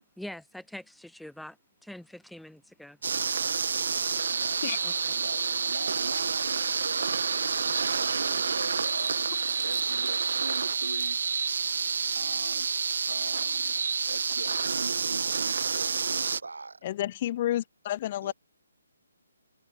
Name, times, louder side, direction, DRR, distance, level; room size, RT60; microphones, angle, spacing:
voice 1, 0.2-1.6 1.8-3.0 4.8-5.1 11.8-12.1, left 1 dB, ahead, 2.0 m, -45 dB
sound 1, 3.0-16.4, right 5 dB, 65° right, 1.2 m, -28 dB
voice 2, 4.1-4.7 5.0-7.3 7.8-9.4 9.6-11.2 12.1-12.7 13.1-13.8 14.1-16.8 18.2-18.3, right 3 dB, 85° right, 4.9 m, -41 dB
voice 3, 16.8-18.3, left 13 dB, 40° left, 0.4 m, -30 dB
hypercardioid pair, 150°, 0 cm